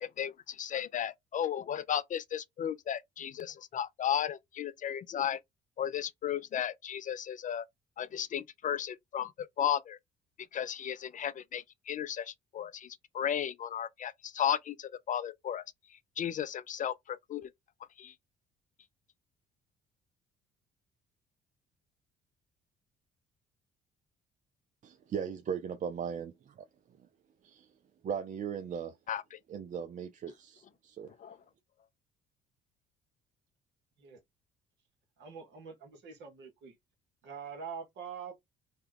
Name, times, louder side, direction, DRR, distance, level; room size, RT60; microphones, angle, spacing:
voice 1, 0.0-5.4 5.8-7.6 8.0-10.0 10.5-15.7 16.2-17.5 18.0-18.1 29.1-29.4 31.2-31.4, left 9 dB, 40° left, 0.4 m, -34 dB
voice 2, 24.8-26.7 27.4-27.7 28.0-28.9 29.5-31.1, right 7 dB, 40° right, 0.5 m, -38 dB
voice 3, 35.2-36.7 37.2-38.4, right 6 dB, 60° right, 1.2 m, -44 dB
2.9 x 2.2 x 3.4 m
hypercardioid pair, 55°, 20 cm